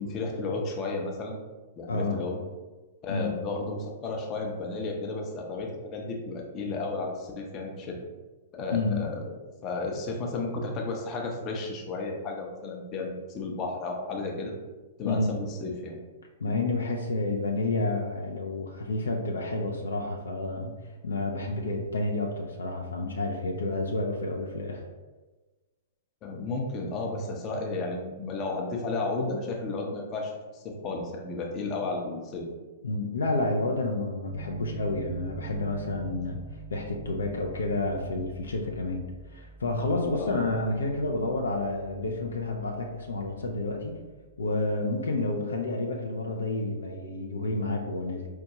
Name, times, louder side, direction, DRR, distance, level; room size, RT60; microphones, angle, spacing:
voice 1, 0.0-1.4 1.8-2.4 3.0-8.0 8.5-9.2 9.6-14.5 15.0-16.0 26.2-32.5 40.1-40.3, left 3 dB, 30° left, 1 dB, 0.6 m, -33 dB
voice 2, 1.9-2.2 3.1-3.3 8.7-9.0 15.0-15.3 16.4-20.7 21.0-24.8 32.8-36.4 36.7-39.0 39.3-43.9 44.4-48.3, left 2 dB, 70° left, 1 dB, 0.4 m, -30 dB
Piano, 34.3-44.5, right 3 dB, 65° right, 0.5 m, -46 dB
4.5 x 2.2 x 2.8 m, 1.2 s
figure-of-eight pair, 110°, 0 cm